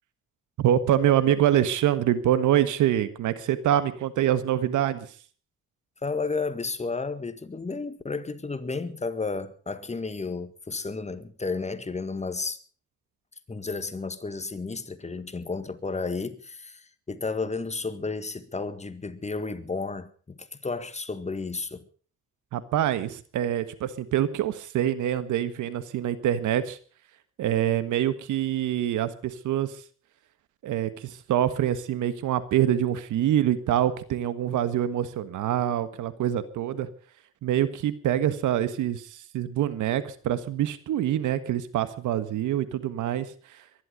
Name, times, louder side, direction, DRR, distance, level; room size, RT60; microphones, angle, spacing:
voice 1, 0.6-5.2 22.5-26.8 27.4-29.8 30.6-36.9 37.4-43.7, right 11 dB, 80° right, 1.6 m, -25 dB
voice 2, 6.0-12.6 13.5-21.9, left 4 dB, 20° left, 1.8 m, -32 dB
23.0 x 11.5 x 5.2 m
cardioid pair, 90°, 30 cm